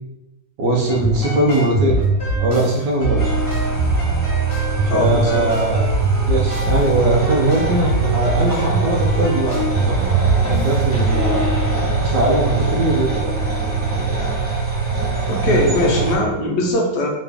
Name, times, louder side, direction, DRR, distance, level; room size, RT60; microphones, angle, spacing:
voice 1, 0.6-2.0 2.4-3.4 4.8-5.9 6.3-11.4 12.0-13.3 15.4-16.1, right 1 dB, 70° right, -1 dB, 1.2 m, -21 dB
sound 1, 0.9-14.3, right 2 dB, 35° left, 1.3 m, -22 dB
sound 2, 3.2-16.2, right 4 dB, 10° right, 0.5 m, -23 dB
voice 2, 4.9-5.5 15.3-17.1, left 1 dB, 65° left, 0 dB, 1.2 m, -20 dB
3.3 x 3.0 x 3.4 m, 0.92 s
omnidirectional pair, 2.1 m